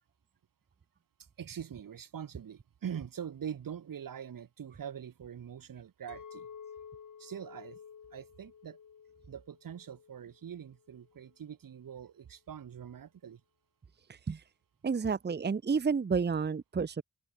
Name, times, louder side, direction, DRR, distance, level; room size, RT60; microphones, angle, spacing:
voice 1, 1.4-6.5 7.2-7.8 8.1-8.8 9.3-13.4, right 8 dB, 90° right, 2.6 m, -43 dB
Chink clink, 6.1-10.4 10.9-11.3, left 7 dB, 65° left, 3.1 m, -51 dB
voice 2, 14.1-14.4 14.8-17.0, right 5 dB, 30° right, 0.9 m, -30 dB
open air
wide cardioid pair, 110°, 33 cm